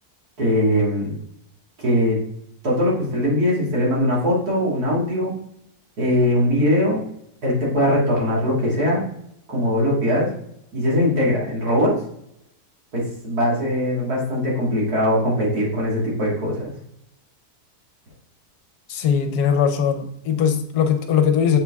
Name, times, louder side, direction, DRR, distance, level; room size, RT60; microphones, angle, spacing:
voice 1, 0.4-1.1 1.8-2.2 2.6-5.4 6.0-7.0 7.4-9.0 9.5-10.3 10.7-12.0 12.9-16.7, left 1 dB, 65° right, -5 dB, 2.7 m, -21 dB
voice 2, 18.9-21.6, left 7 dB, 75° left, 7 dB, 1.2 m, -20 dB
7.2 x 4.7 x 3.5 m, 0.75 s
omnidirectional pair, 1.8 m